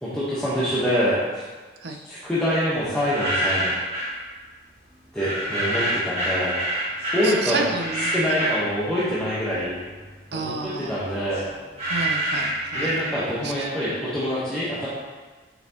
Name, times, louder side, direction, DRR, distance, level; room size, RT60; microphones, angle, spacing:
voice 1, 0.0-1.4 2.1-3.7 5.1-6.6 7.1-7.7 8.1-9.8 10.3-11.5 12.7-14.9, equal, 5° left, -11 dB, 1.1 m, -25 dB
sound 1, 2.9-4.2 5.2-9.4 9.8-13.5, right 1 dB, 35° right, 2.0 m, -27 dB
voice 2, 7.2-8.1 8.4-8.5 10.3-11.0 11.8-13.0 13.4-13.5, right 3 dB, 60° right, 4 dB, 0.6 m, -30 dB
6.8 x 6.0 x 3.0 m, 1.3 s
head